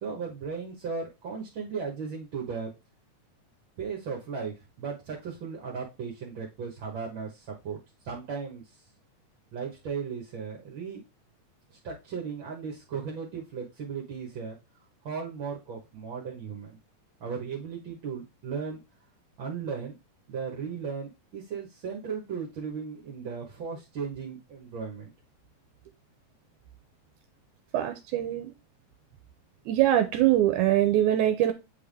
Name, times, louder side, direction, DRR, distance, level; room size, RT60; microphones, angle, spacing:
voice 1, 0.0-2.7 3.8-8.8 9.5-11.0 11.7-14.6 15.0-16.8 17.2-18.8 19.4-19.9 20.3-25.1, right 6 dB, 50° right, -2 dB, 1.6 m, -36 dB
voice 2, 27.7-28.5 29.7-31.5, right 12 dB, 80° right, 8 dB, 2.0 m, -23 dB
8.3 x 3.6 x 3.4 m, 0.25 s
omnidirectional pair, 3.6 m